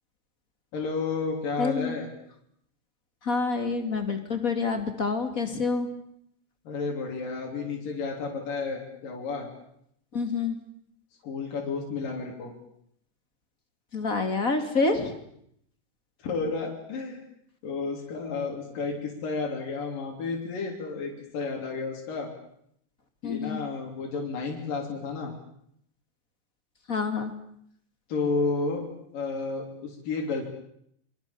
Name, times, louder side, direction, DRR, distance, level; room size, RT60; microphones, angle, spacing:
voice 1, 0.7-2.1 6.6-9.5 11.2-12.5 16.2-17.2 17.6-22.3 23.2-25.3 28.1-28.9 29.1-30.5, left 4 dB, 80° left, -1 dB, 5.1 m, -31 dB
voice 2, 1.6-1.9 3.2-5.9 10.1-10.6 13.9-15.1 23.2-23.6 26.9-27.4, left 4 dB, 25° left, 7 dB, 2.8 m, -27 dB
27.5 x 25.0 x 7.2 m, 0.72 s
omnidirectional pair, 3.9 m